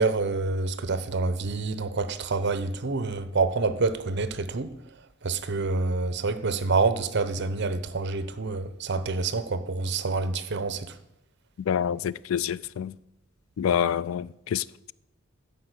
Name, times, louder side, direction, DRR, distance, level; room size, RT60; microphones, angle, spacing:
voice 1, 0.0-4.7 5.2-11.0, right 3 dB, 55° right, 0.8 m, -27 dB
voice 2, 11.7-12.9 13.6-14.9, left 8 dB, 80° left, 0.3 m, -27 dB
12.5 x 5.3 x 8.1 m
head